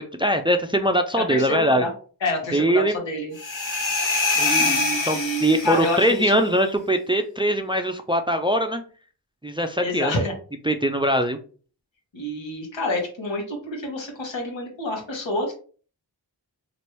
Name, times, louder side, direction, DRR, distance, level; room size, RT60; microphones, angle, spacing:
voice 1, 0.2-1.8 2.5-3.0 4.4-8.8 9.4-10.2 10.7-11.4, right 1 dB, 15° right, 6 dB, 0.3 m, -22 dB
voice 2, 1.3-1.9 2.2-3.3 4.6-6.5 9.8-10.3 12.1-15.5, left 1 dB, 85° left, 0 dB, 1.2 m, -28 dB
sound 1, 3.3-6.1, left 3 dB, 45° left, 1.3 m, -24 dB
3.0 x 2.5 x 3.0 m, 0.41 s
cardioid pair, 45°, 44 cm